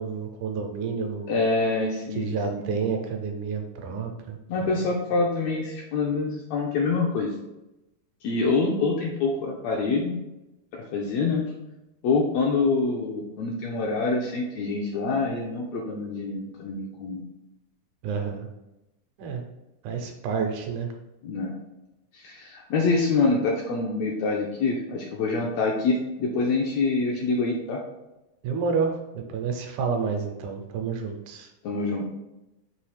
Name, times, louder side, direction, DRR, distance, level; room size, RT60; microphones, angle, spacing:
voice 1, 0.0-1.3 2.2-4.7 18.0-18.5 19.2-19.4 19.8-20.9 28.4-31.5, right 5 dB, 80° right, 2 dB, 2.0 m, -29 dB
voice 2, 1.3-2.3 2.5-2.6 4.5-7.3 8.2-10.2 10.7-11.5 12.0-17.2 21.2-21.6 22.1-27.8 31.6-32.0, left 3 dB, 80° left, -1 dB, 1.6 m, -26 dB
5.4 x 2.7 x 3.2 m, 0.95 s
omnidirectional pair, 3.6 m